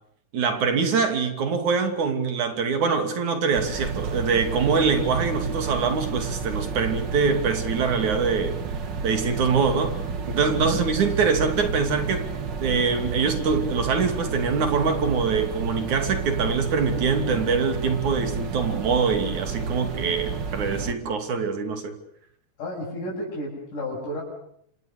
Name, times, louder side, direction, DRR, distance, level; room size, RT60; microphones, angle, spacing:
voice 1, 0.3-8.6 9.0-10.0 10.3-12.3 12.6-21.9, right 5 dB, 70° right, 7 dB, 4.2 m, -24 dB
sound 1, 3.5-20.9, right 5 dB, 40° right, 2.0 m, -31 dB
voice 2, 10.5-10.8 22.6-24.2, left 1 dB, 85° left, -5 dB, 8.7 m, -31 dB
28.5 x 26.5 x 6.7 m, 0.71 s
omnidirectional pair, 3.5 m